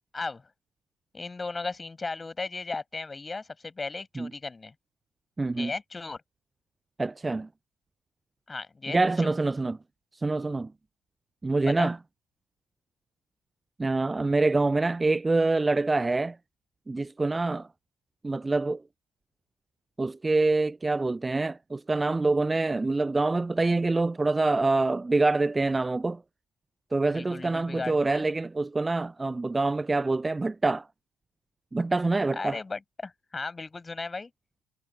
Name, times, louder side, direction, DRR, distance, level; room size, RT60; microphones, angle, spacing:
voice 1, 1.1-4.7 5.5-6.2 8.5-9.3 11.6-11.9 27.1-28.2 32.4-34.3, left 3 dB, 20° left, 6.3 m, -36 dB
voice 2, 5.4-5.7 7.0-7.5 8.9-9.8 10.1-10.7 11.4-12.0 13.8-16.4 16.9-17.7 18.2-18.8 20.0-26.2 26.9-30.9 31.7-32.6, right 3 dB, 15° right, 0.5 m, -26 dB
figure-of-eight pair, 50°, 0 cm